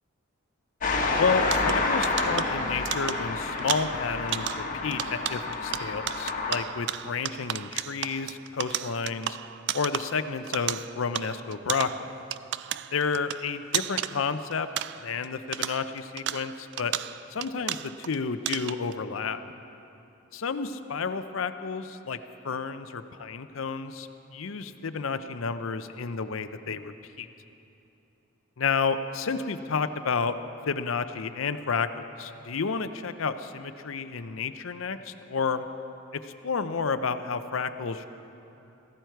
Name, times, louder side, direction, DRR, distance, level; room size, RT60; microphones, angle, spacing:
sound 1, 0.8-6.6, left 3 dB, 40° left, 1.4 m, -29 dB
voice 1, 1.2-9.4 9.7-12.2 12.9-14.7 15.0-16.9 17.3-19.4 20.3-22.2 22.4-27.3 28.6-30.3 30.7-35.6 36.1-38.1, left 5 dB, 70° left, 11 dB, 0.6 m, -31 dB
sound 2, 1.4-15.3 15.5-18.2 18.5-18.9, right 12 dB, 55° right, 0.3 m, -34 dB
16.5 x 15.5 x 4.6 m, 2.9 s
head